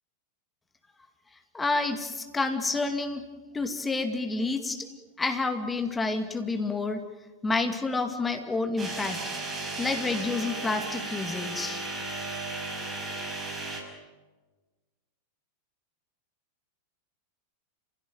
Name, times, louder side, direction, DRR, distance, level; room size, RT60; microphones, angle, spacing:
voice 1, 1.5-3.2 3.5-4.9 5.2-7.0 7.4-9.2 9.8-11.8, left 3 dB, 10° left, 6 dB, 2.2 m, -29 dB
sound 1, 8.8-13.8, right 2 dB, 20° right, 5.8 m, -35 dB
29.0 x 16.5 x 9.2 m, 1.3 s
figure-of-eight pair, 90°, 0 cm